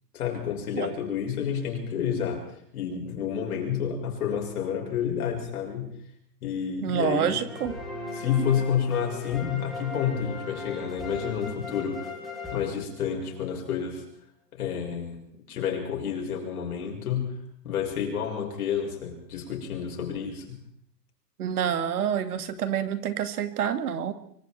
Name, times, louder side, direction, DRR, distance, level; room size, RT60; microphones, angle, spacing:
voice 1, 0.1-5.9 6.4-7.4 8.1-12.1 12.5-14.0 14.5-15.2 15.5-17.3 17.6-20.6, left 8 dB, 60° left, 1 dB, 6.5 m, -29 dB
voice 2, 6.8-7.8 21.4-24.1, right 9 dB, 60° right, 10 dB, 2.5 m, -27 dB
sound 1, 7.5-13.4, left 3 dB, ahead, 5.5 m, -38 dB
25.0 x 24.5 x 4.5 m, 0.67 s
hypercardioid pair, 165°, 50 cm